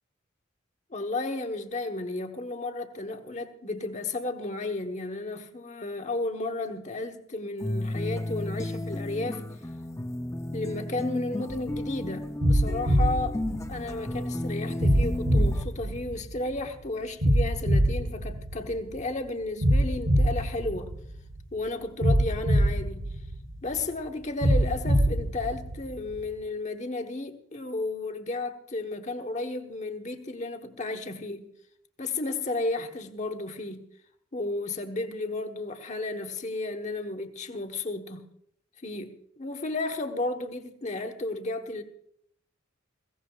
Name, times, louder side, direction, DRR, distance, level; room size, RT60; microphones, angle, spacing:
voice 1, 0.9-9.5 10.5-13.4 13.7-20.9 21.5-23.1 23.6-31.5 32.0-33.8 34.3-38.2 38.8-41.8, left 2 dB, 35° left, 1.2 m, -33 dB
sound 1, 7.6-15.6, left 1 dB, 15° left, 0.6 m, -33 dB
sound 2, 11.5-11.8 12.4-14.2 14.8-16.6 17.2-19.0 19.6-21.4 22.0-23.8 24.4-26.2, equal, 80° right, 7.9 m, -24 dB
21.5 x 16.5 x 2.4 m
head